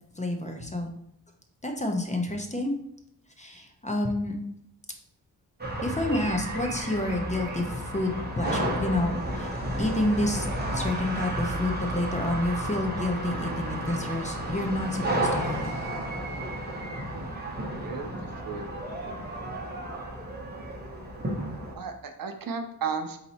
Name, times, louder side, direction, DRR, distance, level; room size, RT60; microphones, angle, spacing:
voice 1, 0.1-0.9 1.6-2.8 3.4-4.4 5.8-10.5 10.7-15.8, left 1 dB, 20° left, 3 dB, 0.6 m, -29 dB
sound 1, 5.6-21.7, right 1 dB, 25° right, 0.9 m, -32 dB
voice 2, 17.8-18.7 21.8-23.2, right 5 dB, 60° right, 6 dB, 0.6 m, -34 dB
4.2 x 2.7 x 4.1 m, 0.75 s
wide cardioid pair, 100°, 38 cm